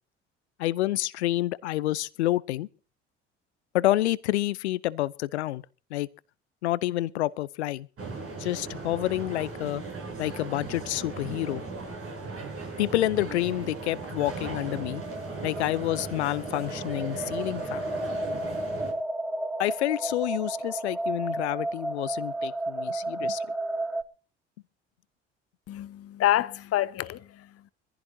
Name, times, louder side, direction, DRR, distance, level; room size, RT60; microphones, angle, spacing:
voice 1, 0.6-2.7 3.7-5.6 5.9-6.1 6.6-7.9 8.4-9.8 10.2-11.6 12.8-15.0 15.4-17.8 19.6-23.4, left 15 dB, 70° left, 0.7 m, -28 dB
sound 1, 8.0-18.9, right 3 dB, 40° right, 7.4 m, -37 dB
sound 2, 13.8-24.0, right 1 dB, ahead, 0.9 m, -33 dB
voice 2, 25.7-27.7, left 13 dB, 45° left, 1.1 m, -28 dB
25.0 x 15.0 x 2.8 m
figure-of-eight pair, 55°, 34 cm